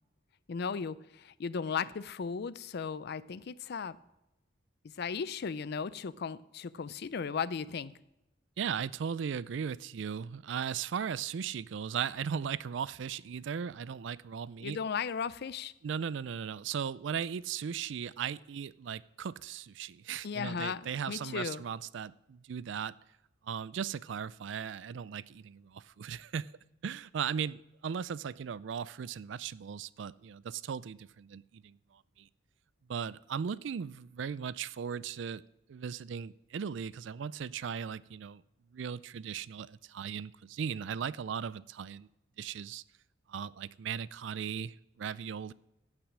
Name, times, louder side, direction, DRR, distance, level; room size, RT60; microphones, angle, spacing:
voice 1, 0.5-4.0 4.8-7.9 14.6-15.7 20.2-21.6, left 6 dB, 55° left, 0.4 m, -36 dB
voice 2, 8.6-14.8 15.8-22.9 23.5-26.5 26.8-31.8 32.2-32.3 32.9-35.4 35.7-38.4 38.7-42.1 42.4-42.8 43.3-45.5, right 7 dB, 65° right, 0.4 m, -37 dB
16.5 x 6.1 x 6.1 m
head